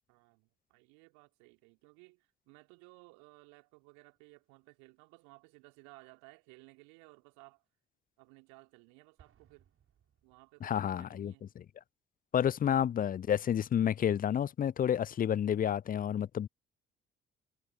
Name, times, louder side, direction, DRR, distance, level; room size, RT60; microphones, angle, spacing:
voice 1, 0.1-7.6 8.2-9.7 10.2-11.5, right 33 dB, 65° right, 3.8 m, -59 dB
Explosion, 9.2-11.0, right 9 dB, 45° right, 7.5 m, -67 dB
voice 2, 10.6-11.6 12.3-16.5, left 9 dB, 30° left, 0.5 m, -30 dB
figure-of-eight pair, 45°, 30 cm